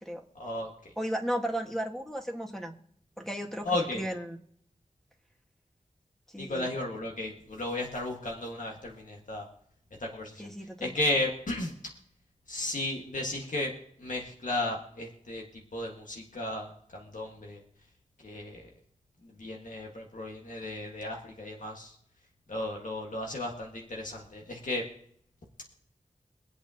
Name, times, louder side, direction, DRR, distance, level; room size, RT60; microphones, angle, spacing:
voice 1, 0.3-0.9 3.6-4.0 6.3-9.5 10.0-11.7 12.5-13.7 14.0-15.4 15.7-17.6 18.2-18.7 19.2-21.9 22.5-24.8, left 2 dB, 75° left, -1 dB, 1.7 m, -34 dB
voice 2, 1.0-2.7 3.2-4.4 6.3-6.7 10.4-10.9, equal, 5° left, 2 dB, 1.5 m, -35 dB
24.5 x 8.2 x 2.8 m, 0.67 s
wide cardioid pair, 75°, 13 cm